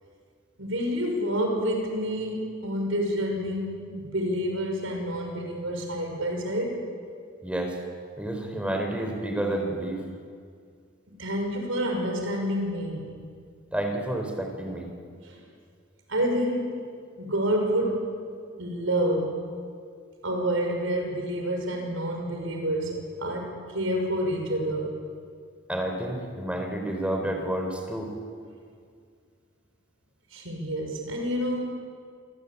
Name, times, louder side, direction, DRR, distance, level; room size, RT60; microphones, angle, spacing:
voice 1, 0.6-6.9 11.2-13.1 15.2-15.4 16.1-16.8 17.2-18.1 18.6-19.5 20.2-25.0 30.3-31.7, equal, 85° right, 2 dB, 5.9 m, -28 dB
voice 2, 7.4-7.8 8.2-10.0 13.7-14.9 25.7-28.1, right 1 dB, 5° right, 3 dB, 4.1 m, -30 dB
28.0 x 21.5 x 8.6 m, 2.1 s
head